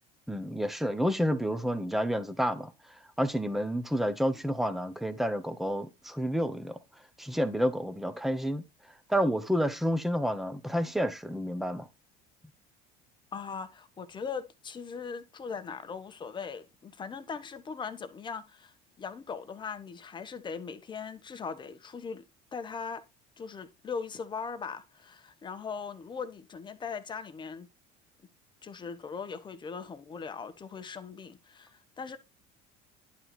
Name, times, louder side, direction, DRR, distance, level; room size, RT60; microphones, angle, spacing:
voice 1, 0.3-2.7 3.2-6.8 7.2-8.6 9.1-11.9, equal, ahead, 1.0 m, -29 dB
voice 2, 13.3-22.2 22.5-23.0 23.4-27.7 28.6-32.2, left 5 dB, 25° left, 1.1 m, -40 dB
11.0 x 4.1 x 4.4 m
cardioid pair, 140°, 19 cm